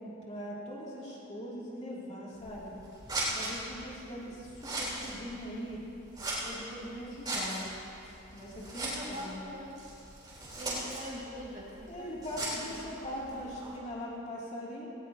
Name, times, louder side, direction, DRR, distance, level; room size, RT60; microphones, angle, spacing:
voice 1, 0.0-2.8 3.3-5.8 6.4-7.7 8.3-9.4 11.9-14.9, equal, 30° left, -6 dB, 2.9 m, -41 dB
Scissors, 2.3-13.8, right 1 dB, 20° right, 3.8 m, -39 dB
voice 2, 8.8-9.8 10.6-13.1, equal, 35° right, -4 dB, 2.0 m, -44 dB
18.5 x 18.5 x 2.9 m, 2.8 s
head